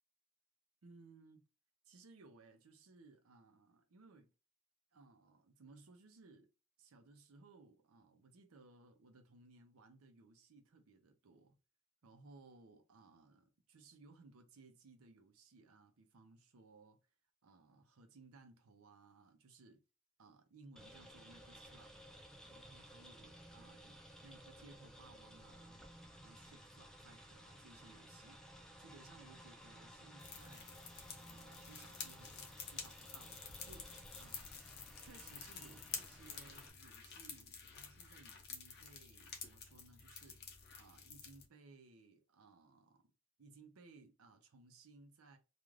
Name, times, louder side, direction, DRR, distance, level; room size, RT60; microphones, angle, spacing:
voice 1, 0.8-1.5 1.8-4.3 4.9-6.5 6.8-11.6 12.0-17.0 17.4-19.8 20.2-21.9 22.5-25.9 26.2-28.4 28.8-30.8 31.3-34.5 35.0-43.1 43.4-45.4, right 3 dB, 90° right, 0.6 m, -62 dB
sound 1, 20.8-36.7, equal, 5° left, 0.3 m, -57 dB
sound 2, 30.2-41.4, left 6 dB, 50° left, 0.7 m, -50 dB
2.4 x 2.4 x 3.1 m
head